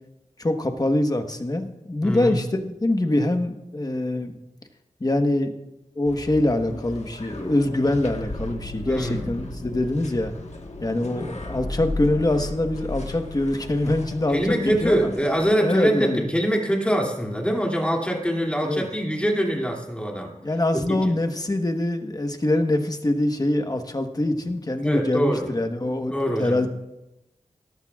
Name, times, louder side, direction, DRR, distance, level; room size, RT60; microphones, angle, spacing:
voice 1, 0.4-4.4 5.0-5.5 6.0-10.3 10.8-15.0 15.6-16.3 18.6-18.9 20.4-26.7, left 1 dB, 30° left, 6 dB, 1.2 m, -24 dB
voice 2, 2.0-2.4 8.8-9.3 14.3-20.3 20.7-21.0 24.8-25.5 26.1-26.7, equal, 10° left, 0 dB, 2.5 m, -24 dB
sound 1, 6.1-15.6, left 2 dB, 60° left, 1.4 m, -35 dB
18.0 x 13.5 x 2.4 m, 0.94 s
wide cardioid pair, 75°, 13 cm